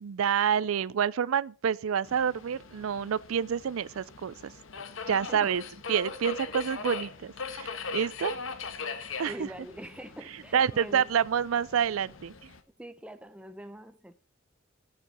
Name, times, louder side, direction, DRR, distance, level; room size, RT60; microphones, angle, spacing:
voice 1, 0.0-4.5 5.1-5.6 5.9-8.3 9.2-9.5 10.5-12.3, right 8 dB, 85° right, 0.4 m, -28 dB
Subway metro underground, 2.1-12.6, left 4 dB, 70° left, 1.2 m, -40 dB
voice 2, 5.1-5.5 9.3-11.1 12.8-14.1, equal, 5° right, 0.8 m, -44 dB
14.5 x 6.9 x 4.3 m
head